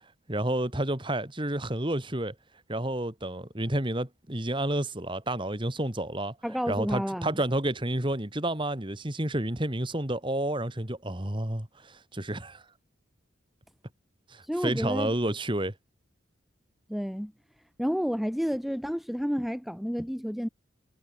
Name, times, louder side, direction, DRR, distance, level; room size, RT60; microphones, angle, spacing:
voice 1, 0.3-2.3 2.7-6.3 6.7-12.6 14.3-15.7, right 1 dB, 25° right, 2.2 m, -30 dB
voice 2, 6.4-7.4 14.4-15.1 16.9-17.3 17.8-20.5, equal, ahead, 1.2 m, -30 dB
head